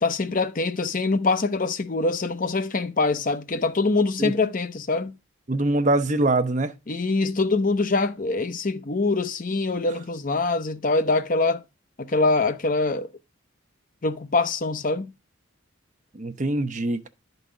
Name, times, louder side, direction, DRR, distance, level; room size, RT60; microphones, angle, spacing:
voice 1, 0.0-5.1 6.9-11.6 12.0-13.1 14.0-15.1, left 3 dB, 40° left, 0.7 m, -24 dB
voice 2, 5.5-6.7 9.9-10.0 16.1-17.1, right 2 dB, 35° right, 0.7 m, -23 dB
11.5 x 4.0 x 4.9 m
head